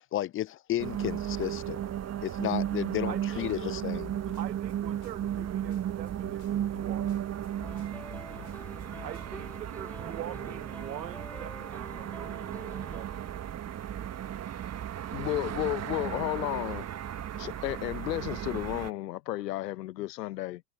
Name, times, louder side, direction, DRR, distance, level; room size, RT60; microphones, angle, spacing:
voice 1, 0.0-1.8 2.2-4.2, left 13 dB, 25° left, 0.5 m, -33 dB
sound 1, 0.8-18.9, right 10 dB, 30° right, 1.7 m, -35 dB
voice 2, 3.0-3.6 4.4-7.3 9.0-13.2, right 11 dB, 80° right, 1.9 m, -44 dB
Snare drum, 4.0-9.5, left 19 dB, 50° left, 5.6 m, -51 dB
sound 2, 7.6-13.0, left 1 dB, 5° left, 3.7 m, -48 dB
voice 3, 15.1-16.9 17.4-20.6, left 15 dB, 75° left, 1.0 m, -33 dB
hypercardioid pair, 75°, 49 cm